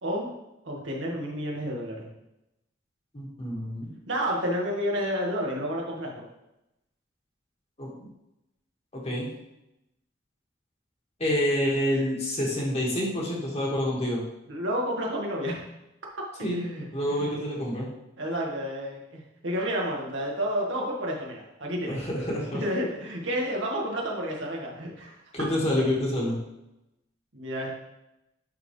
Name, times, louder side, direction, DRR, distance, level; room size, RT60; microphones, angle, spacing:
voice 1, 0.0-0.3 0.6-2.1 4.1-6.3 14.5-15.6 16.4-17.3 18.2-22.0 22.5-25.2 25.8-25.9 27.3-27.7, equal, 75° right, -2 dB, 1.8 m, -30 dB
voice 2, 3.1-3.9 7.8-8.1 8.9-9.3 11.2-14.2 16.4-16.6 16.9-17.9 21.9-22.6 25.3-26.4, left 1 dB, 35° left, -4 dB, 2.0 m, -27 dB
10.5 x 4.4 x 3.3 m, 0.89 s
head